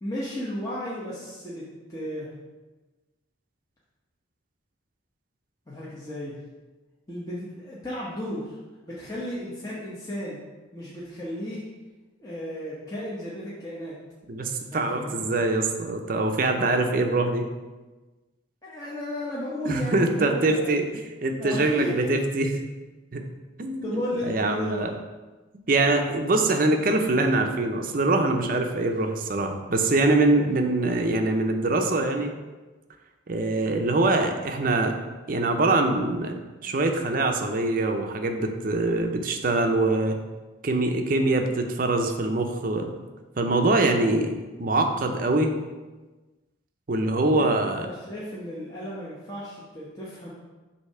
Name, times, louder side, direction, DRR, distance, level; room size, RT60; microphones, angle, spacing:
voice 1, 0.0-2.3 5.7-6.3 7.1-8.6 8.9-10.4 10.7-11.6 12.2-14.0 14.7-15.3 18.6-20.9 21.4-22.1 23.8-24.9 28.4-28.9 30.3-30.5 47.3-47.5 47.8-50.3, left 1 dB, 20° left, -8 dB, 0.9 m, -34 dB
voice 2, 14.3-17.4 19.7-22.5 23.1-23.2 23.6-24.9 25.7-32.3 33.3-34.9 35.3-36.3 36.6-40.2 40.6-42.9 43.4-45.5 46.9-47.9, right 2 dB, 45° right, 4 dB, 0.5 m, -24 dB
6.5 x 2.8 x 5.5 m, 1.2 s
head